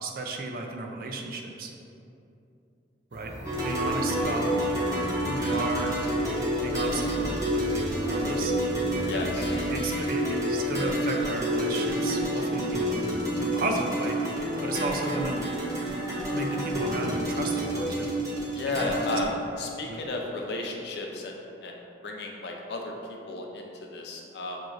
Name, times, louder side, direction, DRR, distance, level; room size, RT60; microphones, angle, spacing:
voice 1, 0.0-1.7 3.1-3.3 3.6-4.5 5.3-6.0 6.6-8.5 9.1-9.2 9.7-13.1 13.4-14.2 14.6-15.4 16.3-18.1 18.8-19.1 19.8-20.0, right 2 dB, 50° right, 2 dB, 0.4 m, -33 dB
sound 1, 3.1-17.9, left 1 dB, 85° right, 0.7 m, -39 dB
sound 2, 3.5-19.3, right 1 dB, 20° right, 0.7 m, -29 dB
voice 2, 9.1-9.5 18.5-19.3 19.6-24.6, left 2 dB, 65° left, 0 dB, 0.5 m, -34 dB
6.2 x 2.9 x 2.5 m, 2.7 s
head